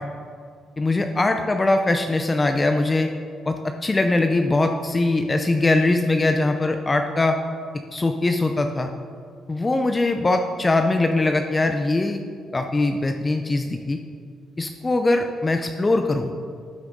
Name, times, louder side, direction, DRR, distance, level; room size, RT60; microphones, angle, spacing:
voice 1, 0.8-3.1 3.5-7.4 7.9-8.9 9.5-12.2 12.5-14.0 14.6-16.3, left 2 dB, 25° left, 6 dB, 0.5 m, -21 dB
12.5 x 6.4 x 3.9 m, 2.2 s
cardioid pair, 90°, 0 cm